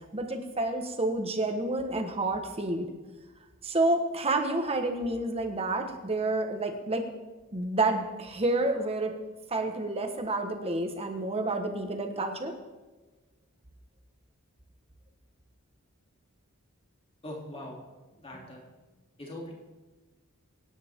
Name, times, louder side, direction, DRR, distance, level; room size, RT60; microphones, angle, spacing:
voice 1, 0.1-2.9 3.6-7.1 7.5-9.1 9.5-12.6, right 2 dB, 25° right, 5 dB, 1.5 m, -29 dB
voice 2, 17.2-17.8 18.2-18.6 19.2-19.5, left 1 dB, 25° left, -2 dB, 3.3 m, -41 dB
25.0 x 10.0 x 3.8 m, 1.2 s
head